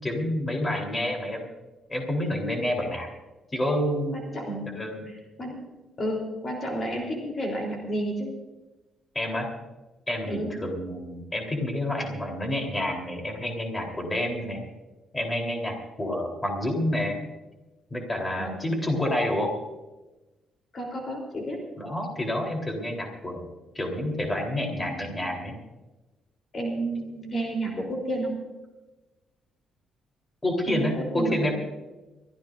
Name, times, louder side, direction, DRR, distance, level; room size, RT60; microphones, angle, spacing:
voice 1, 0.0-1.4 1.9-3.1 3.5-4.2 4.7-5.0 9.1-9.5 10.1-14.6 15.1-17.2 17.9-19.5 21.8-23.5 23.7-25.5 30.4-31.5, left 1 dB, 20° left, 0 dB, 3.8 m, -28 dB
voice 2, 4.1-4.7 5.4-5.6 6.0-8.3 10.3-10.6 18.4-18.6 20.7-21.6 26.5-28.4 30.7-31.5, right 1 dB, 40° left, 0 dB, 3.8 m, -31 dB
24.5 x 15.0 x 2.7 m, 1.1 s
cardioid pair, 90°, 0 cm